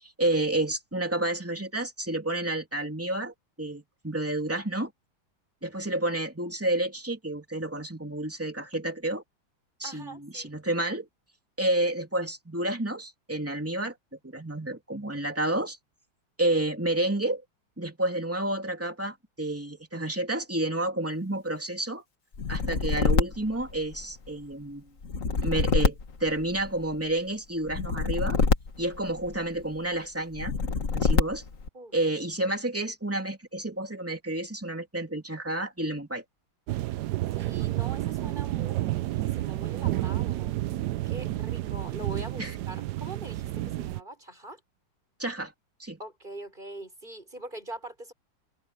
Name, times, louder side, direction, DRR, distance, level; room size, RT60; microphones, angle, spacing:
voice 1, 0.0-4.9 5.6-9.2 9.8-11.1 11.6-13.9 14.2-15.8 16.4-17.4 17.8-22.0 22.5-24.9 25.4-28.4 28.8-30.5 30.9-31.4 31.9-36.2 42.4-42.5 45.2-45.5 45.8-46.0, right 1 dB, 5° right, 3.0 m, -30 dB
voice 2, 9.8-10.5 31.7-31.9 37.3-40.6 41.0-44.6 46.0-48.1, right 1 dB, 20° right, 6.0 m, -42 dB
sound 1, 22.3-24.3 25.0-27.0 27.7-29.6 30.3-31.7, left 4 dB, 40° left, 1.9 m, -26 dB
sound 2, 36.7-44.0, right 15 dB, 75° right, 0.9 m, -30 dB
omnidirectional pair, 2.3 m